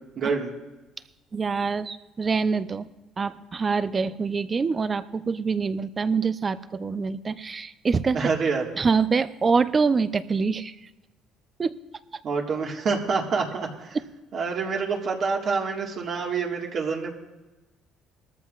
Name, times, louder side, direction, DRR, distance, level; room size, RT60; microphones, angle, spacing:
voice 1, 0.2-0.5 8.1-8.6 12.2-14.0 14.3-17.2, right 5 dB, 50° right, 1 dB, 1.7 m, -27 dB
voice 2, 1.3-2.9 3.2-8.2 8.8-10.7 11.6-11.7, right 5 dB, 30° right, 14 dB, 0.5 m, -25 dB
20.0 x 14.0 x 2.4 m, 1.1 s
cardioid pair, 115°, 0 cm